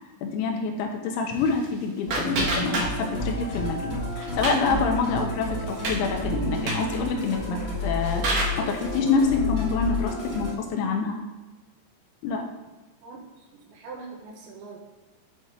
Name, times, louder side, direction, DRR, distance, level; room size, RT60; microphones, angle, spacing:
voice 1, 0.2-11.2 12.2-12.5, left 4 dB, 85° left, 3 dB, 3.3 m, -27 dB
sound 1, 1.3-3.3 3.6-4.7 5.1-5.2 5.6-6.0 6.5-6.9 7.7-8.7, right 2 dB, 55° right, 2.0 m, -29 dB
Musical instrument, 2.1-10.5, left 1 dB, 60° left, 0.6 m, -31 dB
voice 2, 13.5-14.8, right 4 dB, 80° right, -1 dB, 3.7 m, -42 dB
9.6 x 3.5 x 4.4 m, 1.2 s
omnidirectional pair, 5.2 m